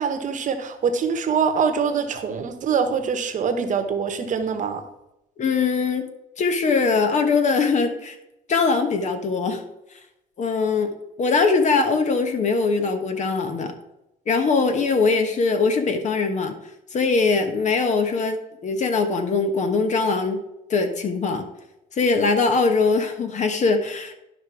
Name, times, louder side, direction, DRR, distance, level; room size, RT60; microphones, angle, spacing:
voice 1, 0.0-4.8, right 6 dB, 50° right, 7 dB, 1.2 m, -24 dB
voice 2, 5.4-6.1 6.4-8.2 8.5-9.6 10.4-13.7 14.3-16.5 16.9-18.4 18.6-20.4 20.7-21.4 21.9-24.1, left 4 dB, 45° left, 7 dB, 1.4 m, -21 dB
11.5 x 5.3 x 4.7 m, 0.88 s
cardioid pair, 110°, 17 cm